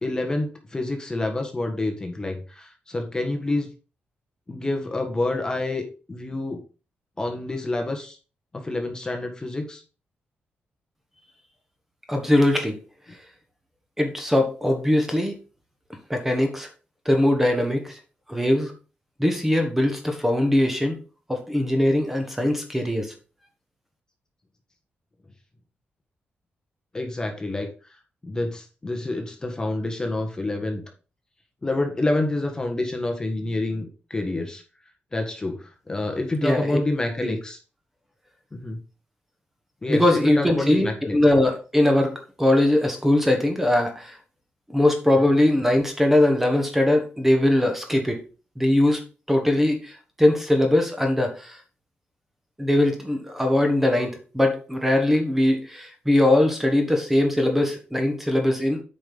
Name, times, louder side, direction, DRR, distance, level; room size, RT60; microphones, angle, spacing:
voice 1, 0.0-3.7 4.5-6.6 7.2-8.2 8.5-9.8 26.9-27.7 28.2-30.8 31.6-34.6 35.1-37.6 38.5-38.8 39.8-41.1 45.3-45.4, left 2 dB, 20° left, 3 dB, 1.4 m, -28 dB
voice 2, 12.1-12.8 14.0-15.3 16.1-16.7 17.0-17.9 18.3-18.7 19.2-21.0 21.3-23.1 36.4-36.8 37.2-37.3 39.9-44.2 44.7-48.2 48.6-49.0 49.3-51.6 52.6-58.8, left 1 dB, 5° right, 4 dB, 1.4 m, -21 dB
8.7 x 5.2 x 4.0 m, 0.35 s
wide cardioid pair, 125°, 4 cm